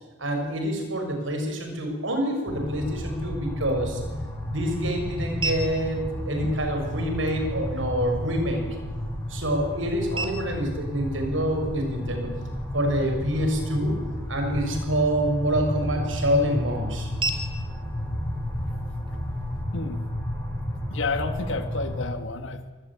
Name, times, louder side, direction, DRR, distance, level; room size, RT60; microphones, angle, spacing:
voice 1, 0.2-4.0 4.5-8.6 9.3-12.3 12.7-14.0 14.3-17.1, equal, 80° right, 4 dB, 6.5 m, -26 dB
sound 1, 2.5-22.1, left 1 dB, 10° left, 5.4 m, -32 dB
sound 2, 3.6-19.6, right 3 dB, 25° right, 2.8 m, -40 dB
voice 2, 20.9-22.7, left 3 dB, 75° left, 9 dB, 1.7 m, -31 dB
24.5 x 20.0 x 8.8 m, 1.2 s
head